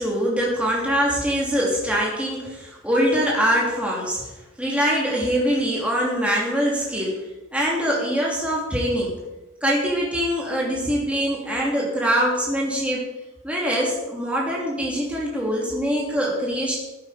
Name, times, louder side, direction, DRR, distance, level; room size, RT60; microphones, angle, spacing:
voice 1, 0.0-4.2 4.6-7.2 7.5-9.1 9.6-13.0 13.4-16.8, equal, 5° right, -3 dB, 2.9 m, -23 dB
14.5 x 8.2 x 5.1 m, 1.1 s
head